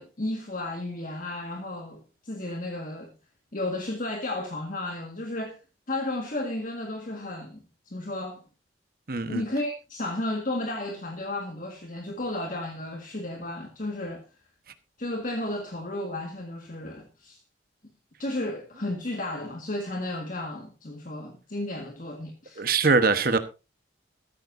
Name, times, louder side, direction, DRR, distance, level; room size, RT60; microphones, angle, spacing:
voice 1, 0.0-3.1 3.5-5.6 5.9-7.6 7.8-8.4 9.3-14.2 15.0-17.4 18.2-22.6, left 1 dB, 45° left, 1.7 m, -33 dB
voice 2, 9.1-9.4 22.6-23.4, right 4 dB, 50° right, 1.2 m, -22 dB
14.5 x 13.5 x 2.7 m
head